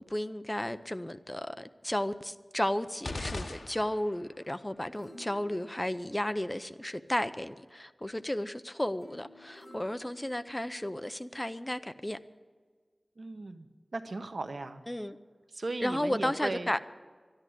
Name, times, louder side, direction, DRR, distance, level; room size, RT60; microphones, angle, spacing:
voice 1, 0.1-12.2 14.9-15.2 15.8-16.8, left 1 dB, 20° left, 0.6 m, -33 dB
sound 1, 3.0-4.3, left 2 dB, 80° left, 1.0 m, -39 dB
sound 2, 4.7-7.0 9.0-11.0 11.6-11.7, left 1 dB, 65° left, 4.5 m, -55 dB
voice 2, 13.2-13.7 13.9-14.8 15.5-16.8, right 2 dB, 85° right, 0.9 m, -37 dB
13.0 x 10.5 x 9.2 m
wide cardioid pair, 65°, 0 cm